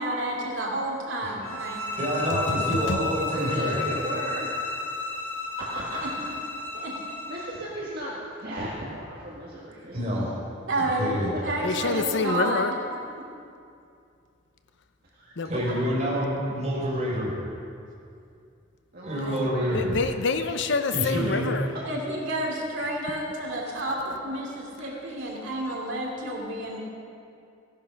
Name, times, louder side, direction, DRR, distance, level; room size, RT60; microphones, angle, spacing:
voice 1, 0.0-1.9 5.9-6.1 6.7-6.9 10.6-11.1 11.4-12.6 21.8-26.8, right 1 dB, 70° right, -2 dB, 2.9 m, -30 dB
sound 1, 1.4-7.6, left 2 dB, 10° left, 1.8 m, -32 dB
voice 2, 2.0-3.8 9.9-10.4 10.8-11.3 15.4-17.4 19.0-19.8 20.9-21.5 24.8-24.9, equal, 35° right, -4 dB, 4.2 m, -28 dB
voice 3, 3.3-4.5 5.7-6.0 7.3-10.1 11.6-11.7 15.1-15.4 18.9-19.8 21.4-21.5, right 1 dB, 50° right, -5 dB, 1.8 m, -36 dB
voice 4, 11.6-12.7 15.4-15.5 19.7-21.7, left 4 dB, 65° left, 8 dB, 0.8 m, -26 dB
16.0 x 11.0 x 5.8 m, 2.5 s
head